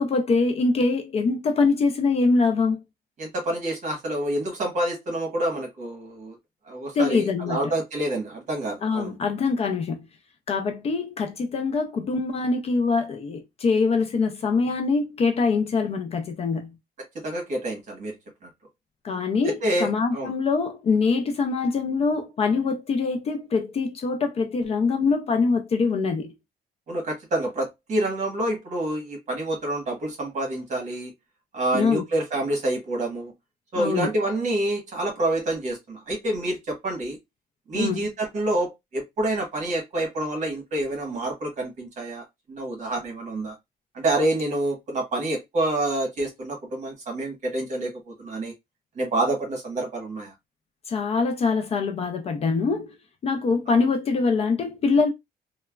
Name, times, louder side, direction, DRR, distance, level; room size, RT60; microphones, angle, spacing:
voice 1, 0.0-2.8 6.9-7.7 8.8-10.1 10.5-16.7 19.0-26.3 31.7-32.0 33.7-34.1 37.7-38.1 50.9-52.9 53.2-55.1, left 4 dB, 35° left, 0.4 m, -24 dB
voice 2, 3.2-6.3 6.7-9.1 17.2-18.1 19.6-20.3 26.9-31.1 31.5-33.3 33.7-37.2 37.7-43.5 43.9-48.5 49.0-50.3, right 1 dB, 45° right, 1.1 m, -27 dB
3.2 x 2.1 x 2.2 m
cardioid pair, 175°, 17 cm